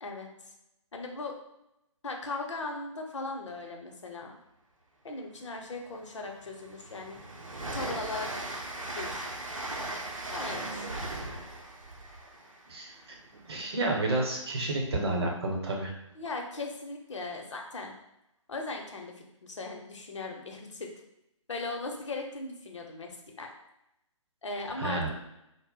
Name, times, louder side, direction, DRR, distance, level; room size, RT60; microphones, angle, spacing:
voice 1, 0.9-1.3 2.0-4.3 5.0-7.2 7.7-8.3 8.9-9.3 10.3-11.0 16.2-17.9 18.5-19.1 19.4-20.9 21.5-23.5 24.4-25.0, left 3 dB, 65° left, 2 dB, 0.6 m, -38 dB
Train, 5.5-5.6 6.0-13.7, right 2 dB, 85° right, 0.6 m, -38 dB
voice 2, 13.5-15.9 24.8-25.1, right 2 dB, 50° right, 0 dB, 0.7 m, -30 dB
2.3 x 2.0 x 3.7 m, 0.86 s
figure-of-eight pair, 135°, 17 cm